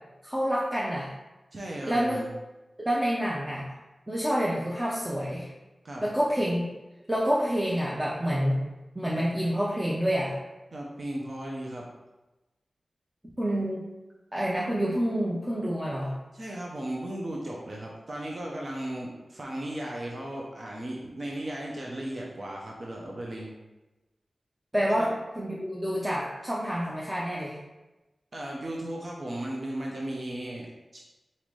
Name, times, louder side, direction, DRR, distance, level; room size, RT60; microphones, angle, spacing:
voice 1, 0.2-1.1 1.9-2.2 2.8-3.6 4.1-5.5 6.0-6.7 7.1-8.6 9.0-10.3 13.4-13.8 14.3-16.1 24.7-27.6, equal, 10° right, -5 dB, 0.6 m, -28 dB
voice 2, 1.5-2.3 5.8-6.1 10.7-11.9 16.3-23.6 25.0-25.1 28.3-31.0, right 1 dB, 45° right, -2 dB, 0.6 m, -36 dB
4.1 x 3.8 x 3.2 m, 1.1 s
wide cardioid pair, 115°, 0 cm